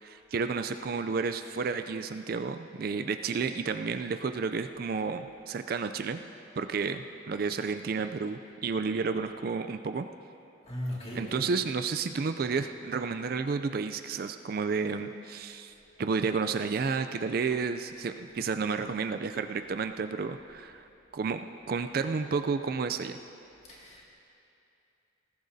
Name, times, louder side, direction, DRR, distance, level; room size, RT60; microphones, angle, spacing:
voice 1, 0.0-6.2 6.6-10.1 11.1-15.7 16.0-20.9 21.1-21.4 21.7-23.2, right 5 dB, 45° right, 8 dB, 0.3 m, -31 dB
voice 2, 10.7-11.5 23.7-24.1, equal, 30° left, -4 dB, 2.1 m, -38 dB
19.5 x 14.5 x 2.7 m, 2.7 s
head